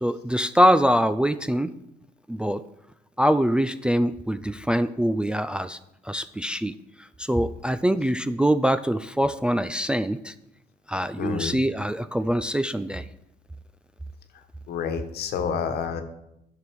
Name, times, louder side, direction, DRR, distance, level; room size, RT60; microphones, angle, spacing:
voice 1, 0.0-1.7 2.3-2.6 3.2-5.8 6.0-6.7 7.2-10.3 10.9-13.1, equal, 5° right, 11 dB, 0.4 m, -23 dB
voice 2, 11.2-11.6 14.7-16.0, left 6 dB, 70° left, 8 dB, 1.3 m, -29 dB
11.0 x 6.7 x 4.8 m, 0.84 s
cardioid pair, 110°, 17 cm